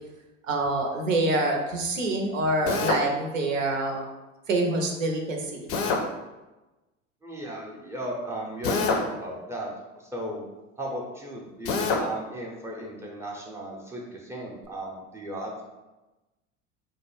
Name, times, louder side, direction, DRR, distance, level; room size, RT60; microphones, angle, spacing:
voice 1, 0.5-4.0 4.5-5.7, right 2 dB, 85° right, 2 dB, 0.5 m, -26 dB
Drill, 2.7-3.1 5.7-6.1 8.6-9.1 11.6-12.1, left 4 dB, 50° left, 0.5 m, -25 dB
voice 2, 7.2-9.7 10.1-10.4 10.8-15.6, right 1 dB, 5° right, -3 dB, 0.4 m, -35 dB
2.3 x 2.1 x 3.0 m, 1.1 s
figure-of-eight pair, 70°, 38 cm